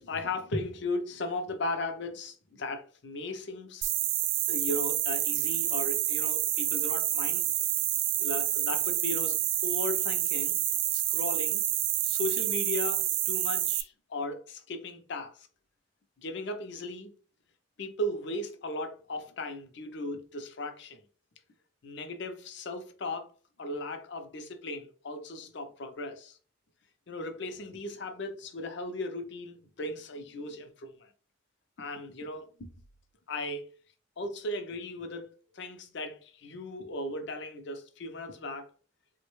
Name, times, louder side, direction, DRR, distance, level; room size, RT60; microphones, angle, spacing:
voice 1, 0.0-3.9 4.5-7.5 8.2-10.6 10.9-11.6 12.0-15.3 16.2-17.1 17.8-21.0 21.8-23.3 23.6-26.4 27.1-30.9 31.8-32.7 33.3-33.7 34.2-35.3 35.5-38.7, left 2 dB, 65° left, 0.5 m, -37 dB
sound 1, 3.8-13.8, right 13 dB, 75° right, 0.3 m, -28 dB
3.4 x 2.2 x 3.0 m
head